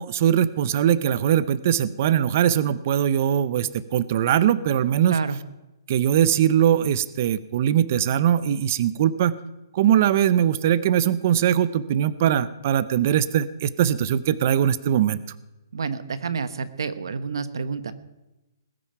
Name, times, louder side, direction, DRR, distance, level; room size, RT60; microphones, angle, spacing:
voice 1, 0.0-5.2 5.9-9.3 9.7-15.2, right 10 dB, 35° right, 17 dB, 0.6 m, -21 dB
voice 2, 5.1-5.4 15.7-17.9, right 5 dB, 85° right, 13 dB, 1.2 m, -29 dB
20.0 x 9.0 x 5.8 m, 0.98 s
hypercardioid pair, 170°, 2 cm